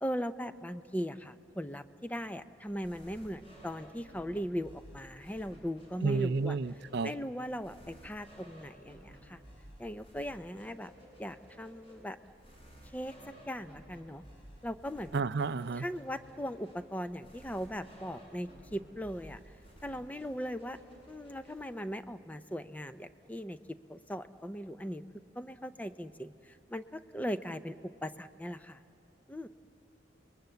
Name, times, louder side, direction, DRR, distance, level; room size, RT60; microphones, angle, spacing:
voice 1, 0.0-6.6 7.0-9.4 9.8-10.9 11.2-12.2 12.9-13.1 13.5-14.2 14.6-15.2 15.7-19.4 19.8-20.8 21.1-25.0 25.4-27.7 28.0-28.8 29.3-29.5, equal, 10° left, 11 dB, 0.5 m, -39 dB
sound 1, 2.7-21.9, equal, 30° left, 7.5 m, -55 dB
voice 2, 6.0-7.1 15.1-15.9, right 4 dB, 60° right, 15 dB, 0.5 m, -31 dB
29.5 x 21.5 x 8.0 m, 2.7 s
head